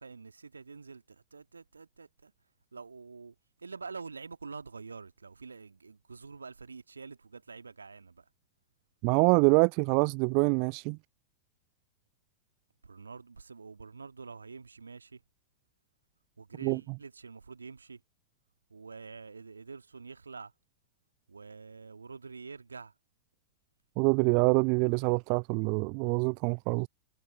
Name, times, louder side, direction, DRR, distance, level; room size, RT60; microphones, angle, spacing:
voice 1, 0.0-2.3 2.7-8.3 12.8-15.2 16.4-18.0 18.7-20.5 21.3-22.9, right 4 dB, 75° right, 1.8 m, -46 dB
voice 2, 9.0-11.0 16.6-16.8 24.0-26.9, right 40 dB or more, 45° right, 0.5 m, -25 dB
figure-of-eight pair, 90°, 0 cm